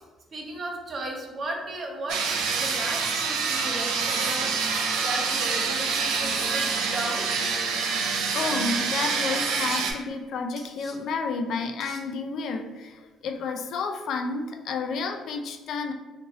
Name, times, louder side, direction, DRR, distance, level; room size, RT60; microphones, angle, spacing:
voice 1, 0.3-2.2 2.6-7.3 7.7-7.8, right 2 dB, 40° right, 1 dB, 0.5 m, -35 dB
sound 1, 2.1-9.9, right 5 dB, 90° right, 0.4 m, -26 dB
sound 2, 7.3-7.6 8.4-8.6 9.5-9.8 10.6-11.0 11.8-12.0, equal, 15° right, 0.9 m, -47 dB
voice 2, 8.3-15.9, left 4 dB, 65° left, 5 dB, 0.3 m, -31 dB
2.6 x 2.5 x 3.0 m, 1.2 s
cardioid pair, 115°, 0 cm